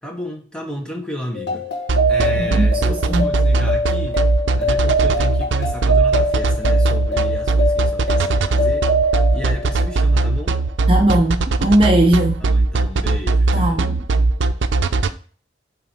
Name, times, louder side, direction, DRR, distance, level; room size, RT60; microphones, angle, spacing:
voice 1, 0.0-1.6 2.1-4.3 4.6-8.9 9.3-10.6 12.4-13.8, equal, 5° left, 1.2 m, -32 dB
sound 1, 1.4-10.4, right 1 dB, 60° left, 1.4 m, -22 dB
sound 2, 1.9-15.1, right 3 dB, 85° right, 0.5 m, -18 dB
voice 2, 2.3-3.3 10.9-12.4 13.5-14.0, right 1 dB, 30° right, 0.6 m, -18 dB
7.3 x 4.2 x 4.3 m
head